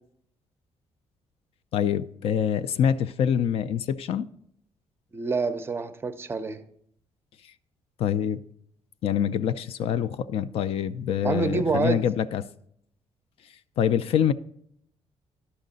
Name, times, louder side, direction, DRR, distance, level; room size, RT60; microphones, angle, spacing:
voice 1, 1.7-4.3 8.0-8.4 9.0-12.4 13.8-14.3, left 9 dB, 60° left, 0.4 m, -25 dB
voice 2, 5.1-6.6 11.2-12.0, right 4 dB, 20° right, 0.5 m, -27 dB
11.0 x 6.4 x 3.9 m
cardioid pair, 165°, 11 cm